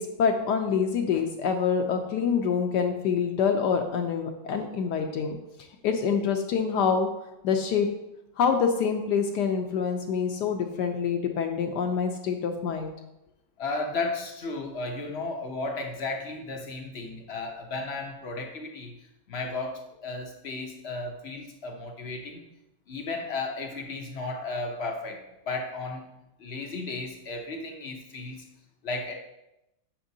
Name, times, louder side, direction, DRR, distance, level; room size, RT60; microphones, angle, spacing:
voice 1, 0.0-5.4 5.8-7.1 7.4-7.9 8.4-12.9, left 6 dB, 75° left, 4 dB, 1.1 m, -26 dB
voice 2, 13.6-18.9 19.3-22.4 22.9-26.1 26.4-28.4 28.8-29.1, left 3 dB, 55° left, 3 dB, 0.7 m, -34 dB
8.7 x 6.0 x 2.7 m, 0.90 s
omnidirectional pair, 2.0 m